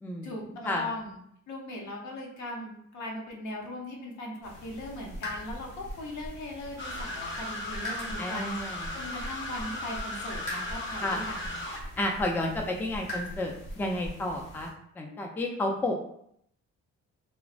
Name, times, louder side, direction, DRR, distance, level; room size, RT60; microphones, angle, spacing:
voice 1, 0.2-1.2 1.5-11.6, left 1 dB, 70° left, -1 dB, 0.8 m, -39 dB
sound 1, 4.4-14.7, equal, 90° left, 1.1 m, -42 dB
sound 2, 6.8-11.8, left 1 dB, 40° left, 0.7 m, -37 dB
voice 2, 8.2-8.8 11.0-11.2 12.0-14.7 15.0-15.9, left 1 dB, 5° left, 1 dB, 0.3 m, -31 dB
3.2 x 2.0 x 2.4 m, 0.70 s
cardioid pair, 90°, 30 cm